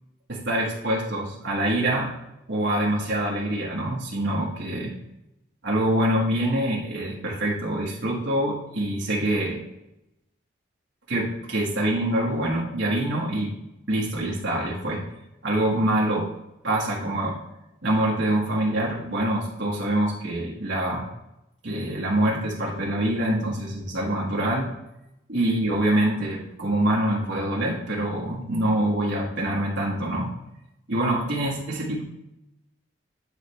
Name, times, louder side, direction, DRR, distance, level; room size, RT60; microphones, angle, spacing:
voice 1, 0.3-2.1 2.5-4.9 5.6-9.6 11.1-13.6 13.9-15.1 15.4-16.3 16.6-17.4 17.8-21.1 21.6-24.7 25.3-30.3 30.9-32.0, right 1 dB, 80° right, -4 dB, 1.4 m, -25 dB
9.0 x 4.2 x 3.2 m, 0.89 s
head